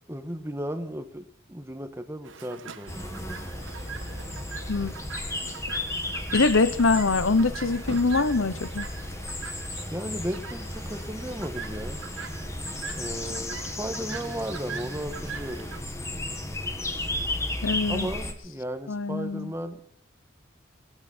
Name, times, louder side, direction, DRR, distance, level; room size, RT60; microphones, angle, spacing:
voice 1, 0.1-3.0 9.9-12.0 12.9-15.7 17.9-19.8, right 1 dB, 15° right, 1.4 m, -35 dB
Chirp tweet, 2.2-15.8, right 6 dB, 75° right, 1.3 m, -42 dB
sound 1, 2.9-18.3, left 1 dB, 15° left, 1.8 m, -34 dB
voice 2, 6.3-8.9 17.6-18.1 18.9-19.5, left 3 dB, 85° left, 0.9 m, -23 dB
20.0 x 15.5 x 4.4 m
head